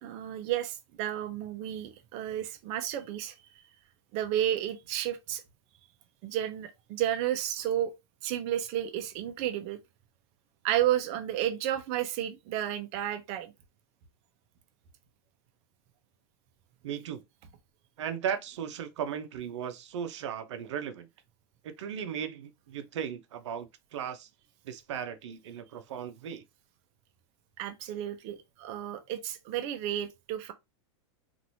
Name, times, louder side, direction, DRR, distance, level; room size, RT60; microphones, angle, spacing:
voice 1, 0.0-3.3 4.1-5.4 6.2-7.9 8.2-9.8 10.6-13.5 27.6-30.5, right 11 dB, 45° right, 0.7 m, -32 dB
voice 2, 16.8-17.2 18.0-21.1 21.6-24.3 24.6-26.4, right 8 dB, 80° right, 0.7 m, -36 dB
3.0 x 2.6 x 2.7 m
supercardioid pair, 135°, 15 cm